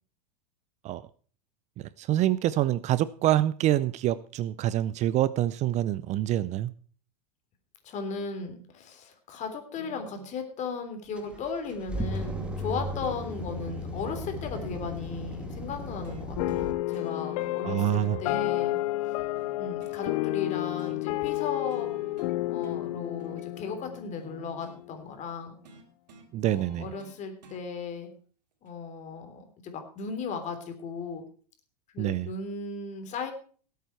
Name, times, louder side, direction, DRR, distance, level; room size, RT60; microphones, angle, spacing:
voice 1, 1.8-6.7 17.6-18.2 26.3-26.9 32.0-32.3, right 13 dB, 35° right, 18 dB, 0.5 m, -26 dB
voice 2, 7.8-18.8 19.6-21.9 22.5-25.6 26.4-28.1 28.6-31.2 31.9-33.3, left 5 dB, 35° left, 6 dB, 3.4 m, -36 dB
sound 1, 9.8-10.4 11.2-11.4 11.7-11.9 12.1-15.2 16.0-16.7 16.9-17.8 18.1-20.0 20.8-21.0 21.3-21.5 21.7-22.4 22.6-24.8 25.6-27.6 28.7-28.8, right 4 dB, 90° right, 2.7 m, -51 dB
sound 2, 11.2-16.7, left 1 dB, 5° right, 2.1 m, -35 dB
sound 3, 16.4-24.9, left 18 dB, 60° left, 0.5 m, -31 dB
17.5 x 8.3 x 4.5 m, 0.43 s
hypercardioid pair, 120°, 21 cm